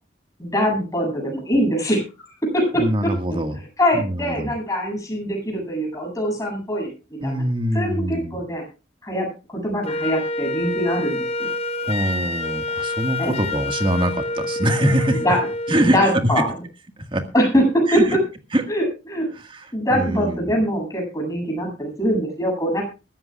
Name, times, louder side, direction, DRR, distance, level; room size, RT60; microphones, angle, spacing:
voice 1, 0.4-2.0 2.4-3.1 3.8-7.4 7.7-8.6 9.0-11.5 13.2-13.4 15.2-15.4 15.8-16.5 17.3-18.0 18.7-19.3 19.7-22.8, equal, 20° left, 1 dB, 8.0 m, -23 dB
voice 2, 2.8-3.6 3.9-4.5 7.2-8.4 11.8-15.2 15.7-16.2 17.1-17.2 17.9-18.2 18.5-18.6 19.3-20.6, right 1 dB, 30° right, 6 dB, 1.8 m, -23 dB
Wind instrument woodwind instrument, 9.8-15.9, left 2 dB, 35° left, 1.1 m, -27 dB
22.0 x 14.0 x 2.4 m, 0.31 s
head